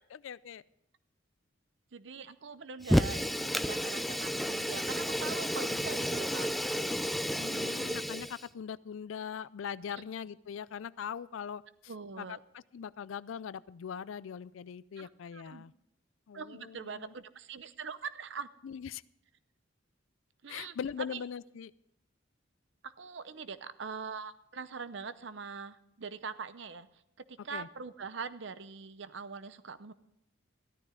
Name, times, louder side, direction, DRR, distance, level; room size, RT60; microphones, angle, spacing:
voice 1, 0.1-0.6 7.3-12.4 12.7-15.7 16.3-17.1 18.6-19.0 20.5-21.7 27.5-27.7, left 7 dB, 80° left, 19 dB, 0.4 m, -41 dB
voice 2, 1.9-6.5 11.9-12.4 15.0-15.6 16.3-18.5 20.4-20.8 21.1-21.2 22.8-26.9 27.2-29.9, right 5 dB, 60° right, 14 dB, 0.7 m, -43 dB
Fire, 2.8-8.4, equal, ahead, 0.4 m, -31 dB
14.0 x 13.0 x 3.8 m, 0.81 s
head